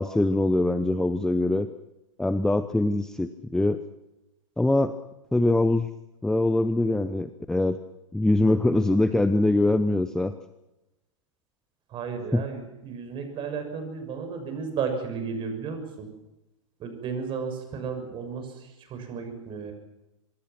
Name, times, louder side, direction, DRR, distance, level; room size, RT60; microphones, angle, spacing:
voice 1, 0.0-1.7 2.2-3.8 4.6-4.9 5.3-5.9 6.2-7.8 8.1-10.3 12.3-12.4, left 2 dB, 5° left, 11 dB, 0.8 m, -23 dB
voice 2, 11.9-16.1 16.8-19.7, right 5 dB, 30° right, 6 dB, 6.5 m, -33 dB
25.0 x 22.5 x 6.1 m, 0.94 s
figure-of-eight pair, 105°, 17 cm